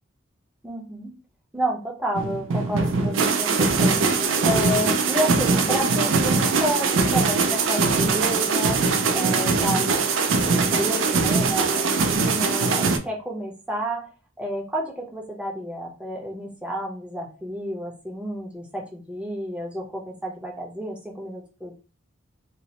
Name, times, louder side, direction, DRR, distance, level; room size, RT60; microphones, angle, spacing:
voice 1, 0.6-1.1 1.5-4.0 4.4-8.8 9.1-10.0 10.4-14.0 14.4-21.7, equal, 5° right, -2 dB, 0.7 m, -30 dB
sound 1, 2.1-13.0, right 4 dB, 75° right, 0.4 m, -21 dB
3.0 x 2.0 x 2.8 m, 0.35 s
head